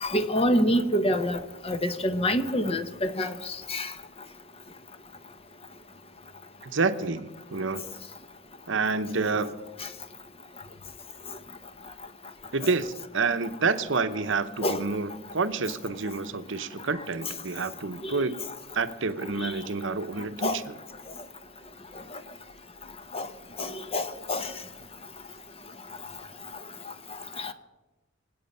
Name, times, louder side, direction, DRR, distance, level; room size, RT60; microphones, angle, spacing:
voice 1, 0.0-1.4 1.6-3.3 3.7-3.9 14.6-14.8 17.2-17.3 18.0-18.2 19.3-19.5 20.4-20.6 23.1-23.3 23.6-24.5 27.4-27.5, equal, 30° left, 1.0 m, -26 dB
voice 2, 6.6-7.8 8.7-9.6 12.5-18.4 18.7-20.7, right 4 dB, 65° right, 0.9 m, -28 dB
25.5 x 8.6 x 5.5 m
head